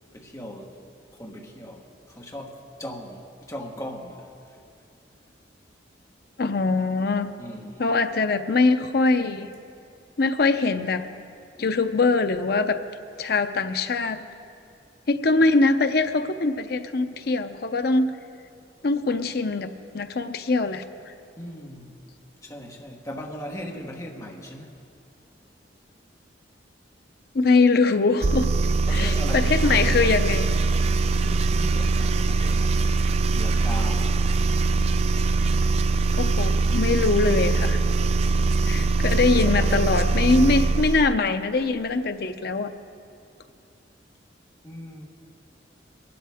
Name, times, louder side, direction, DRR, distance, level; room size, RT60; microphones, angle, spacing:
voice 1, 0.1-0.8 1.1-4.6 7.4-7.8 21.4-21.9 22.4-24.7 28.9-30.1 31.2-32.8 33.3-34.2 39.0-39.7 44.6-45.0, equal, 15° left, 0 dB, 1.3 m, -38 dB
voice 2, 6.4-7.3 7.8-9.5 10.2-11.0 11.6-12.8 13.2-14.2 15.1-18.1 18.8-21.1 27.3-28.5 28.9-30.5 36.1-37.8 38.7-42.7, left 3 dB, 55° left, 8 dB, 0.6 m, -22 dB
sound 1, 28.2-41.2, right 3 dB, 35° right, 0.3 m, -22 dB
22.0 x 12.0 x 3.6 m, 2.5 s
head